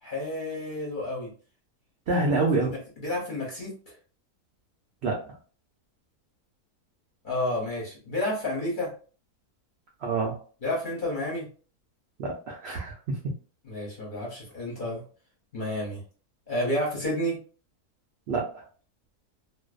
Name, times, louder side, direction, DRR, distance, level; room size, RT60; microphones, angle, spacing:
voice 1, 0.0-1.3 2.2-2.3 2.6-3.9 7.2-8.9 10.6-11.5 13.7-15.0 15.5-16.0 16.5-17.4, left 1 dB, 45° left, -4 dB, 0.7 m, -31 dB
voice 2, 2.1-2.7 5.0-5.4 10.0-10.4 12.2-13.3 18.3-18.7, right 3 dB, 75° right, -1 dB, 0.5 m, -27 dB
2.5 x 2.1 x 2.3 m, 0.38 s
omnidirectional pair, 1.7 m